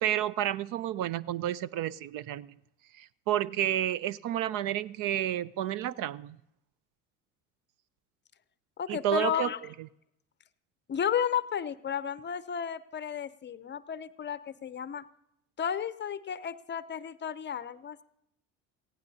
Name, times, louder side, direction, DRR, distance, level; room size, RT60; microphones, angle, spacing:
voice 1, 0.0-2.5 2.9-6.4 8.9-9.5, right 12 dB, 60° right, 20 dB, 0.5 m, -30 dB
voice 2, 8.8-9.6 10.9-15.0 15.6-18.0, left 8 dB, 30° left, 15 dB, 0.6 m, -33 dB
18.5 x 15.5 x 2.8 m, 0.80 s
supercardioid pair, 80°, 38 cm